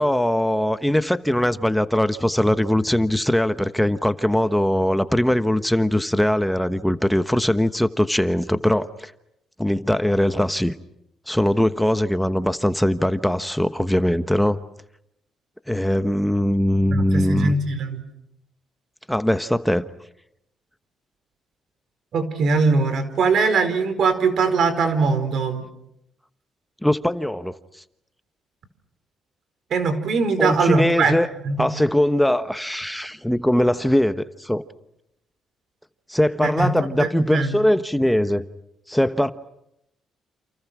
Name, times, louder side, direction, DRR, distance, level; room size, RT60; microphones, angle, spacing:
voice 1, 0.0-9.1 9.6-10.7 11.3-14.6 15.7-17.5 19.1-19.8 26.8-27.5 30.4-31.3 31.6-34.6 36.1-38.4 38.9-39.3, left 1 dB, 5° left, 1.2 m, -21 dB
voice 2, 16.9-18.0 22.1-25.7 29.7-31.1 31.4-31.7 36.4-36.7 37.0-37.6, right 4 dB, 65° right, 4.8 m, -21 dB
29.5 x 28.5 x 6.2 m
cardioid pair, 90°, 0 cm